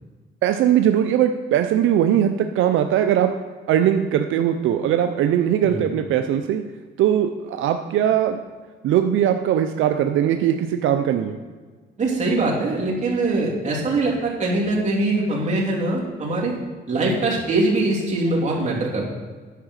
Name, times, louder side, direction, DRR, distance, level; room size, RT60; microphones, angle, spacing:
voice 1, 0.4-3.3 3.7-6.6 7.0-8.4 8.8-11.4, right 10 dB, 80° right, 7 dB, 0.6 m, -20 dB
voice 2, 12.0-16.6 16.9-19.0, right 2 dB, 35° right, -4 dB, 3.2 m, -22 dB
10.0 x 5.8 x 6.4 m, 1.4 s
cardioid pair, 90°, 20 cm